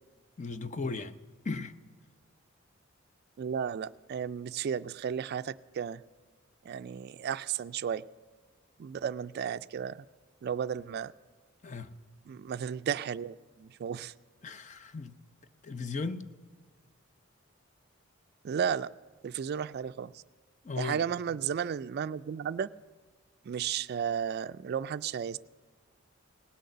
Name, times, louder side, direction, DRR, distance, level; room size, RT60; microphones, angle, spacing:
voice 1, 0.4-1.2 1.4-1.7 11.6-11.9 14.4-15.2 15.6-16.2 20.6-21.0 21.3-21.4, left 4 dB, 35° left, 0.6 m, -36 dB
voice 2, 3.4-6.0 6.7-8.0 8.8-10.0 10.4-11.1 12.3-14.1 18.4-18.9 19.2-20.1 20.8-22.7 23.5-25.4, right 8 dB, 50° right, 0.3 m, -33 dB
18.5 x 6.5 x 6.7 m
head